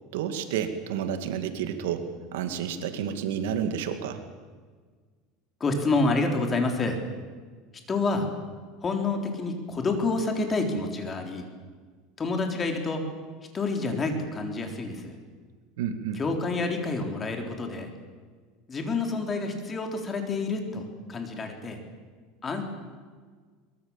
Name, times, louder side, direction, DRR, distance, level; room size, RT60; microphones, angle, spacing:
voice 1, 0.1-4.2 15.8-16.2, right 8 dB, 90° right, 8 dB, 2.5 m, -30 dB
voice 2, 5.6-7.0 7.9-8.3 8.8-11.5 12.2-13.1 13.5-15.2 16.2-17.9 18.7-21.8 22.4-22.6, left 3 dB, 20° left, 4 dB, 3.9 m, -28 dB
23.0 x 22.5 x 7.4 m, 1.5 s
supercardioid pair, 140°, 0 cm